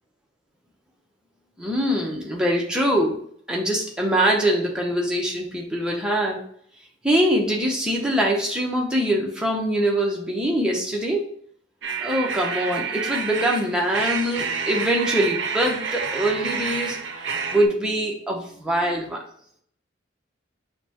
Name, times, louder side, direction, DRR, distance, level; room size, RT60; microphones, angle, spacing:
voice 1, 1.6-3.2 3.5-6.4 7.0-11.3 12.0-17.0 17.5-19.2, right 1 dB, 5° right, -2 dB, 0.7 m, -23 dB
sound 1, 11.8-17.7, right 6 dB, 70° right, 0.5 m, -29 dB
6.5 x 2.2 x 2.9 m, 0.62 s
head